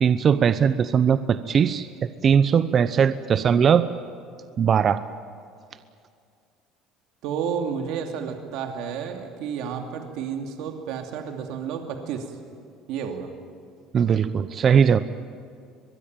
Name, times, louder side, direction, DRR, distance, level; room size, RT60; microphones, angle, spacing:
voice 1, 0.0-3.9 4.6-5.0 13.9-15.0, right 7 dB, 40° right, 12 dB, 0.8 m, -20 dB
voice 2, 7.2-12.3 12.9-13.3, right 7 dB, 70° right, 4 dB, 2.6 m, -31 dB
23.5 x 21.5 x 9.1 m, 2.4 s
cardioid pair, 115°, 0 cm